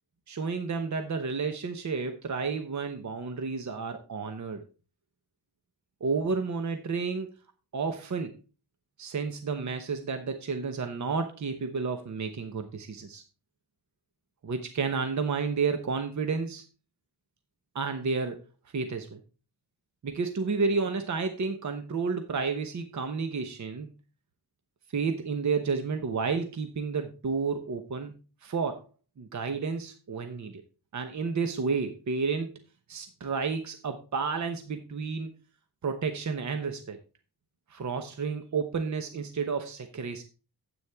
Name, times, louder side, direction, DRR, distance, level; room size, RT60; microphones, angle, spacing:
voice 1, 0.3-4.6 6.0-7.3 7.7-8.3 9.0-13.2 14.4-16.6 17.7-18.4 18.7-19.2 20.0-23.9 24.9-28.1 28.4-28.8 29.2-30.6 30.9-32.6 32.9-35.3 35.8-37.0 37.7-40.2, right 5 dB, 50° right, 7 dB, 0.9 m, -31 dB
9.6 x 8.3 x 3.5 m, 0.33 s
wide cardioid pair, 150°, 38 cm